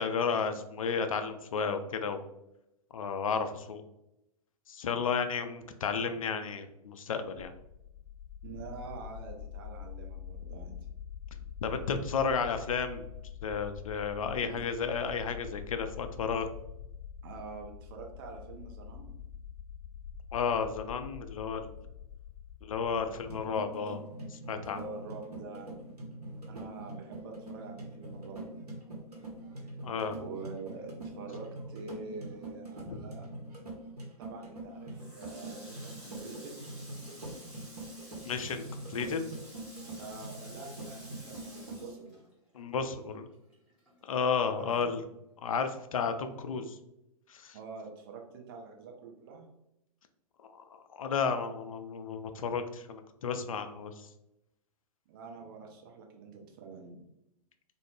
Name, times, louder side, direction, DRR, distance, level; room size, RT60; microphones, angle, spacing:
voice 1, 0.0-2.2 2.9-3.8 4.7-7.5 11.6-13.1 13.4-16.5 20.3-21.7 22.6-24.0 24.3-24.8 29.8-30.2 32.9-33.0 38.2-39.2 42.5-43.3 44.0-45.0 45.4-46.8 47.3-47.6 50.4-53.9, left 5 dB, 60° left, 8 dB, 0.4 m, -32 dB
sound 1, 7.4-23.4, left 8 dB, 25° left, 0.7 m, -45 dB
voice 2, 8.4-10.8 14.4-14.6 17.2-19.2 24.7-26.0 26.5-28.7 30.1-33.3 34.2-36.6 40.0-42.2 44.5-44.7 47.5-49.5 55.1-57.0, right 4 dB, 35° right, 2 dB, 0.6 m, -46 dB
sound 2, 23.2-41.9, right 1 dB, 80° right, 0.7 m, -44 dB
Water tap faucet, 34.9-42.8 43.1-44.4, right 1 dB, 5° right, 0.7 m, -52 dB
2.5 x 2.0 x 3.1 m, 0.85 s
figure-of-eight pair, 110°, 19 cm